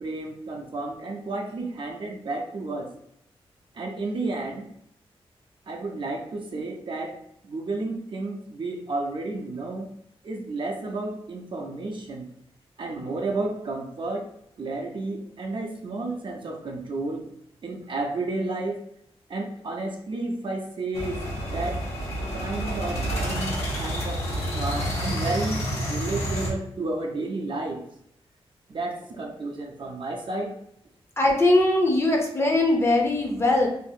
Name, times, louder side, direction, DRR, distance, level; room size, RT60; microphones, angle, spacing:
voice 1, 0.0-2.9 3.7-4.7 5.7-9.9 10.2-12.3 12.8-14.3 14.6-17.3 17.6-18.8 19.3-21.2 21.5-21.9 22.3-27.8 28.7-30.6, right 2 dB, 50° right, 2 dB, 0.5 m, -32 dB
sound 1, 20.9-26.5, equal, 80° left, 1.1 m, -29 dB
voice 2, 31.2-33.7, left 2 dB, 25° left, 1 dB, 0.6 m, -21 dB
2.6 x 2.4 x 2.7 m, 0.71 s
wide cardioid pair, 115°, 10 cm